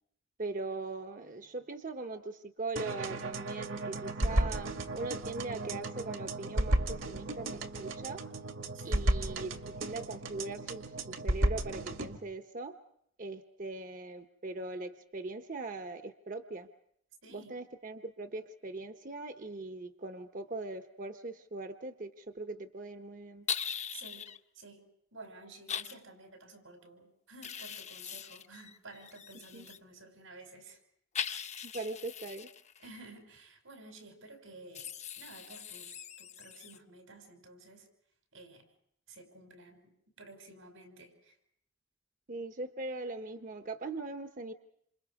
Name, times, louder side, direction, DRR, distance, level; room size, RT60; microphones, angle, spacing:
voice 1, 0.4-8.2 8.8-12.8 13.2-16.7 17.3-23.5 29.5-29.6 31.6-32.5 42.3-44.5, right 3 dB, 40° right, 7 dB, 1.0 m, -40 dB
sound 1, 2.8-12.2, right 1 dB, 70° right, 2.0 m, -34 dB
voice 2, 8.7-9.2 17.2-17.6 23.9-24.3 24.5-24.8 25.1-30.8 32.8-34.9 35.2-37.9 38.3-38.7 39.1-39.9 40.2-41.4, right 2 dB, 90° right, 5 dB, 5.8 m, -52 dB
sound 2, 23.5-24.4 25.7-25.9 27.4-29.8 31.1-32.9 34.7-36.8, left 7 dB, 35° left, 0.9 m, -40 dB
28.0 x 27.5 x 4.9 m, 0.71 s
head